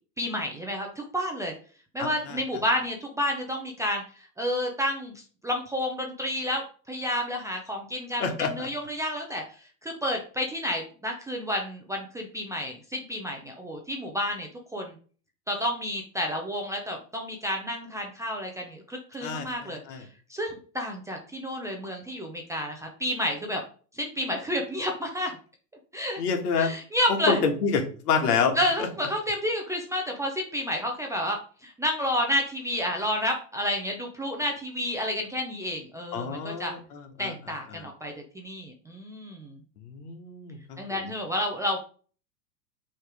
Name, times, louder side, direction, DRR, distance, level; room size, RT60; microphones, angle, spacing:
voice 1, 0.2-1.5 1.9-6.6 6.9-9.4 9.8-15.0 15.5-23.6 23.9-25.3 25.9-26.2 26.6-27.4 28.6-36.7 37.2-39.6 40.8-41.8, left 1 dB, 5° right, 1 dB, 0.5 m, -30 dB
voice 2, 2.0-2.4 8.2-8.7 19.2-20.0 26.2-26.7 27.3-28.9 36.1-37.3 37.7-37.8 39.8-41.1, left 5 dB, 65° left, 4 dB, 1.8 m, -28 dB
6.3 x 3.3 x 4.9 m, 0.40 s
hypercardioid pair, 125°, 49 cm